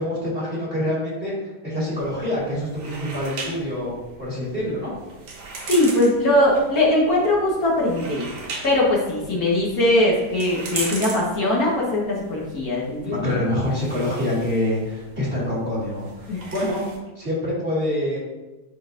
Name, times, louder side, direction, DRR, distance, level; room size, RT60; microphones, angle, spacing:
voice 1, 0.0-4.9 13.0-16.8 17.2-18.2, left 1 dB, 35° right, -6 dB, 2.2 m, -26 dB
sound 1, 2.0-17.0, right 3 dB, 85° right, 1.7 m, -38 dB
voice 2, 5.7-8.3 8.6-13.4 16.3-16.4, left 1 dB, 60° left, -4 dB, 1.9 m, -20 dB
10.0 x 4.0 x 2.6 m, 1.1 s
omnidirectional pair, 1.8 m